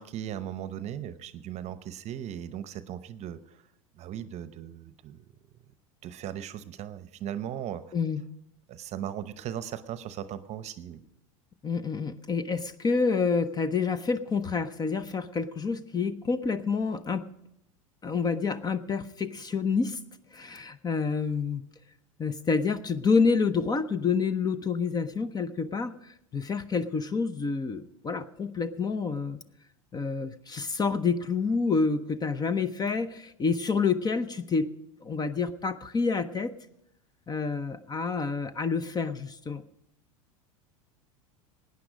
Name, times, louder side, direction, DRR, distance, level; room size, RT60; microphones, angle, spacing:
voice 1, 0.0-3.7 3.9-5.3 6.0-7.9 8.7-11.0, right 10 dB, 40° right, 13 dB, 0.8 m, -38 dB
voice 2, 11.6-17.3 18.0-20.0 20.3-21.6 22.2-29.4 29.9-34.7 35.0-36.5 37.3-39.6, left 5 dB, 25° left, 14 dB, 0.7 m, -28 dB
17.0 x 9.6 x 5.1 m, 0.81 s
hypercardioid pair, 90°, 17 cm